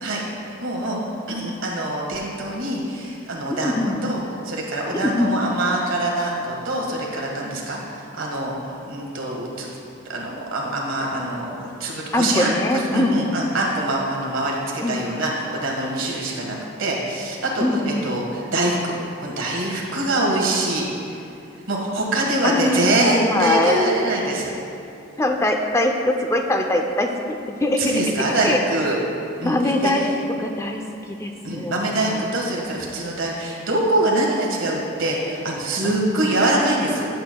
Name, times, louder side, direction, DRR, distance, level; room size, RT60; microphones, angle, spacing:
voice 1, 0.0-1.0 1.3-4.2 4.4-9.7 10.1-18.9 19.2-20.8 21.1-21.2 21.7-24.5 27.8-29.0 29.4-29.9 31.4-37.1, right 1 dB, 85° right, -2 dB, 1.5 m, -24 dB
voice 2, 3.5-4.1 4.9-5.3 12.1-13.3 14.8-15.0 17.6-18.1 22.4-23.8 25.2-28.0 28.4-28.6 29.4-30.1 30.4-30.8 31.2-32.3 35.8-36.2, left 1 dB, 15° left, 3 dB, 0.4 m, -22 dB
11.0 x 7.8 x 2.2 m, 2.8 s
head